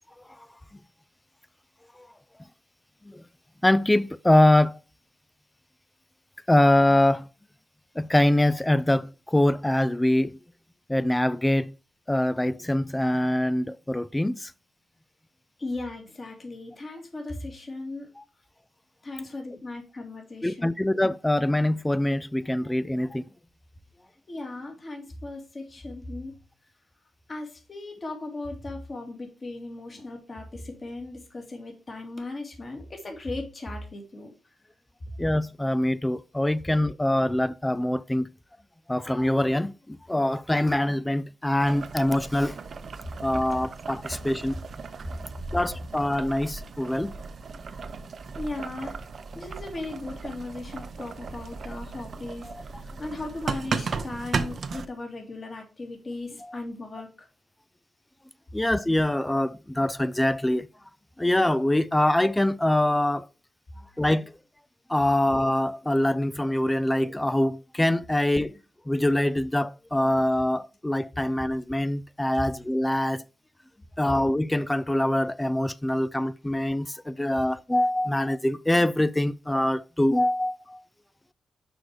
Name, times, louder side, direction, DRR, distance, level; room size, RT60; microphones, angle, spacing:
voice 1, 3.6-4.7 6.5-7.3 8.0-10.4 10.9-11.7 12.1-14.5 18.2-18.3 20.4-23.2 35.2-38.3 38.9-42.6 43.2-44.5 45.5-47.1 52.4-52.6 56.4-56.6 58.5-60.7 61.2-63.3 64.0-64.3 64.9-68.5 68.9-73.2 74.0-80.8, left 1 dB, 10° left, 0.3 m, -24 dB
voice 2, 15.6-18.1 19.0-20.7 24.3-26.4 27.3-34.3 48.3-48.9 49.3-57.3, left 2 dB, 40° left, 2.3 m, -37 dB
Boiling, 41.6-54.9, right 5 dB, 60° right, 0.6 m, -36 dB
6.2 x 4.8 x 4.7 m
cardioid pair, 75°, 0 cm